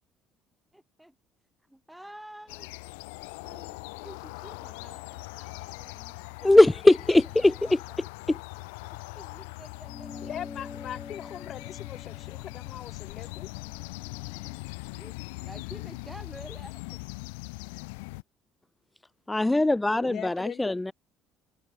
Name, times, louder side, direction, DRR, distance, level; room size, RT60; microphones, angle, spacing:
voice 1, 0.7-1.2 1.6-2.7 3.4-6.7 7.4-8.0 8.8-10.7 14.9-17.0 20.1-20.5, right 1 dB, 5° right, 7.2 m, -50 dB
sound 1, 2.5-18.2, left 29 dB, 75° left, 2.1 m, -41 dB
voice 2, 6.4-7.8 19.3-20.9, left 2 dB, 10° left, 0.5 m, -20 dB
sound 2, 9.9-14.7, left 5 dB, 30° left, 2.2 m, -46 dB
voice 3, 10.2-13.5 20.0-20.9, left 10 dB, 50° left, 0.9 m, -41 dB
hypercardioid pair, 55°, 0 cm